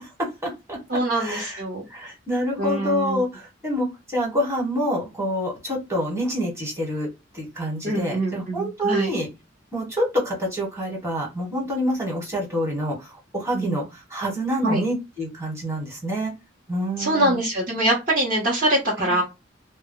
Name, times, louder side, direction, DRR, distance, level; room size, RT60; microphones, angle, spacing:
voice 1, 0.2-0.8 1.1-1.6 1.9-7.1 7.3-9.3 9.7-16.3 16.7-17.4 19.0-19.2, equal, 15° right, 1.1 m, -27 dB
voice 2, 0.9-1.8 2.6-3.2 7.8-9.1 13.5-13.9 14.6-14.8 17.0-19.2, right 1 dB, 45° right, 0.8 m, -24 dB
2.1 x 2.1 x 3.5 m
head